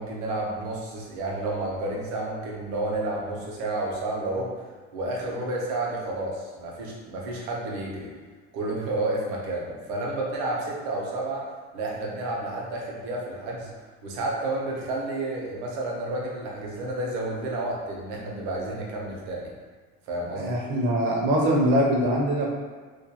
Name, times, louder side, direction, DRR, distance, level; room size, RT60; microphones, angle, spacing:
voice 1, 0.0-4.6 4.9-8.1 8.5-11.4 11.7-13.7 14.0-19.5 20.1-20.6, right 2 dB, 70° right, -2 dB, 0.8 m, -30 dB
voice 2, 20.4-22.5, right 1 dB, 35° right, -2 dB, 0.5 m, -23 dB
2.4 x 2.2 x 2.8 m, 1.4 s
cardioid pair, 155°, 33 cm